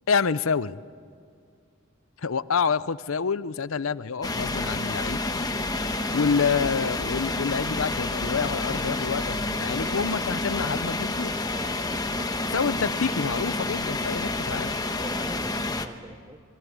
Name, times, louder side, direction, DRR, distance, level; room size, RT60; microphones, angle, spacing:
voice 1, 0.1-0.8 2.2-5.2 6.1-11.4 12.5-14.8, left 5 dB, 80° left, 16 dB, 0.7 m, -27 dB
sound 1, 4.2-15.9, left 2 dB, 20° left, 1.2 m, -29 dB
voice 2, 11.9-12.5 15.0-16.4, right 1 dB, 20° right, 11 dB, 0.9 m, -44 dB
27.5 x 23.0 x 9.5 m, 2.3 s
head